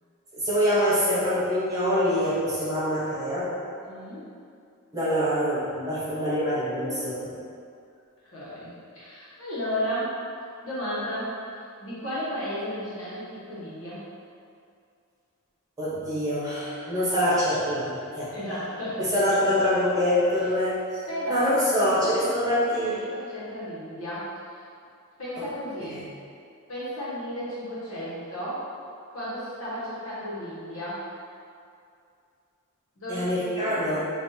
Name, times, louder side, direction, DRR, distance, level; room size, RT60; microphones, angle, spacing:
voice 1, 0.3-3.5 4.9-7.3 15.8-18.3 19.0-21.0 21.3-23.0 25.9-26.0 33.1-34.0, equal, 15° right, -11 dB, 1.1 m, -25 dB
voice 2, 3.8-4.3 8.2-10.2 10.6-14.0 17.0-17.1 18.3-19.0 21.1-24.3 25.2-26.0 26.7-28.6 29.1-31.0 33.0-34.0, equal, 70° left, -9 dB, 1.3 m, -34 dB
5.3 x 2.6 x 2.8 m, 2.4 s
head